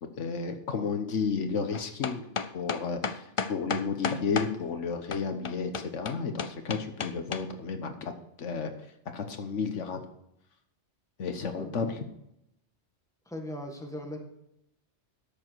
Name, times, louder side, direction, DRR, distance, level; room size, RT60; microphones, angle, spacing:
voice 1, 0.0-2.3 2.5-8.1 8.4-8.7 9.1-10.0 11.2-12.0, left 5 dB, 80° left, 7 dB, 1.4 m, -32 dB
sound 1, 1.7-4.5 5.1-7.4, left 5 dB, 45° left, 0.4 m, -32 dB
voice 2, 11.5-11.9 13.2-14.2, left 1 dB, 5° left, 1 dB, 1.7 m, -39 dB
12.5 x 7.0 x 4.7 m, 0.80 s
omnidirectional pair, 1.2 m